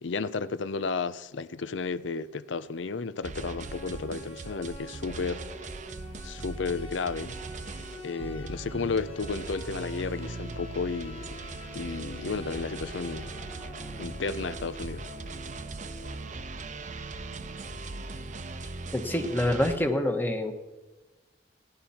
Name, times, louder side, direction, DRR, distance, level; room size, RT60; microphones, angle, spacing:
voice 1, 0.0-5.4 6.2-7.4 8.0-11.4 11.7-13.3 14.0-15.1, left 4 dB, 80° left, 0.6 m, -33 dB
sound 1, 3.2-19.8, right 3 dB, 40° right, 0.7 m, -39 dB
sound 2, 3.4-16.2, left 1 dB, 30° left, 1.7 m, -47 dB
voice 2, 18.9-20.5, left 1 dB, 10° left, 1.2 m, -26 dB
17.5 x 10.5 x 4.3 m
head